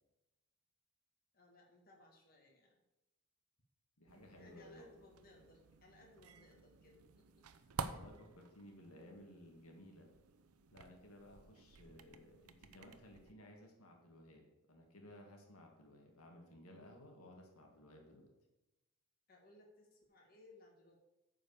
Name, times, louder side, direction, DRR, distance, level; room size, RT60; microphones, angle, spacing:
voice 1, 1.3-2.7 4.3-7.4 19.3-20.9, left 2 dB, 40° left, -1 dB, 1.9 m, -64 dB
voice 2, 4.0-5.1 7.5-10.1 10.7-18.3, left 1 dB, 85° left, 1 dB, 2.0 m, -58 dB
sound 1, 4.1-13.3, right 5 dB, 85° right, 0.7 m, -52 dB
9.4 x 5.0 x 7.0 m, 0.99 s
head